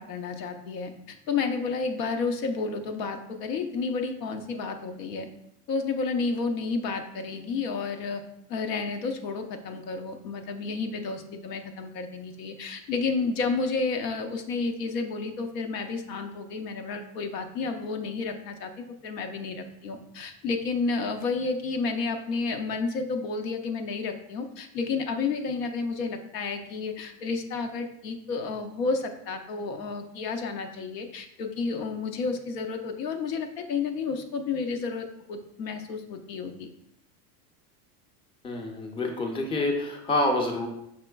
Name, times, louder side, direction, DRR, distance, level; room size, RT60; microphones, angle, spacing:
voice 1, 0.0-5.3 5.7-8.2 8.5-36.7, left 4 dB, 85° left, 5 dB, 0.7 m, -31 dB
voice 2, 38.4-40.7, left 2 dB, 10° left, 2 dB, 0.5 m, -27 dB
5.6 x 3.0 x 2.2 m, 0.78 s
supercardioid pair, 105°, 48 cm